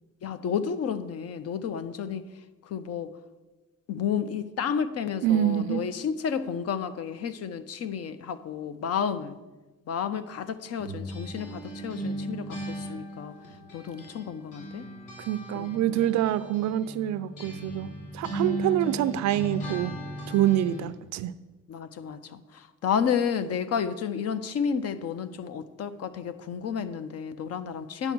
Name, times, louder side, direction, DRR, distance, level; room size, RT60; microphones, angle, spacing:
voice 1, 0.2-2.2 2.6-3.1 3.9-9.4 9.9-13.4 13.7-14.9 15.5-16.1 18.6-18.9 20.7-21.0 21.7-28.1, left 7 dB, 50° left, 12 dB, 0.7 m, -31 dB
voice 2, 5.2-5.9 15.2-19.9 20.3-21.3, right 12 dB, 60° right, 14 dB, 0.5 m, -26 dB
sound 1, 10.8-14.2 14.5-20.9, right 1 dB, 75° left, 3.3 m, -37 dB
8.9 x 5.8 x 6.2 m, 1.1 s
cardioid pair, 115°, 32 cm